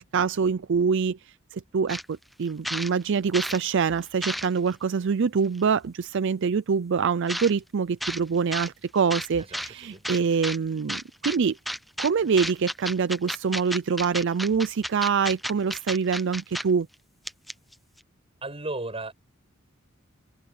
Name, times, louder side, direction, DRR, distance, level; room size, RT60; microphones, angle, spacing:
voice 1, 0.0-11.6 12.0-16.9, right 5 dB, 60° right, 0.5 m, -25 dB
sound 1, 1.9-2.0 2.4-3.6 4.0-4.7 5.5-5.6 7.3-7.5 8.0-8.2 8.5-8.7 9.1-9.7 10.0-10.6 10.9-11.4 11.6-12.1 12.4-16.6 16.9-17.0 17.3-17.7, equal, ahead, 0.8 m, -32 dB
voice 2, 9.4-10.0 18.4-19.1, right 2 dB, 30° right, 7.9 m, -35 dB
open air
head